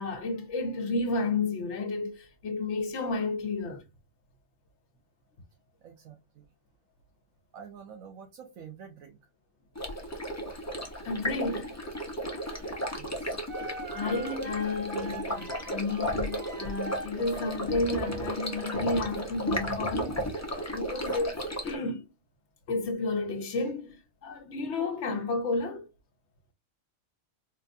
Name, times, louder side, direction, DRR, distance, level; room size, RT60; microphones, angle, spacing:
voice 1, 0.0-3.8 11.0-11.8 13.9-20.2 20.7-21.4 21.6-22.1 22.7-25.9, left 3 dB, 60° left, 1.2 m, -32 dB
voice 2, 5.8-6.5 7.5-9.3 13.0-13.4, right 7 dB, 90° right, 1.2 m, -48 dB
Stream, 9.8-21.8, equal, 15° left, 0.7 m, -34 dB
sound 1, 12.9-13.0 13.5-19.1 19.8-20.7, right 2 dB, 45° right, 0.5 m, -43 dB
4.2 x 2.5 x 2.6 m
omnidirectional pair, 1.4 m